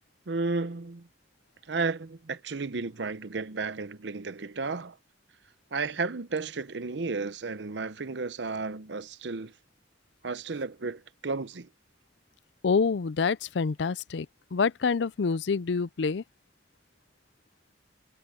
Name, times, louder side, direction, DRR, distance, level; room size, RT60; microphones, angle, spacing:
voice 1, 0.3-1.1 1.7-5.0 5.7-9.5 10.2-11.7, right 4 dB, 75° right, 0.8 m, -33 dB
voice 2, 12.6-14.3 14.5-16.2, left 5 dB, 80° left, 0.5 m, -27 dB
head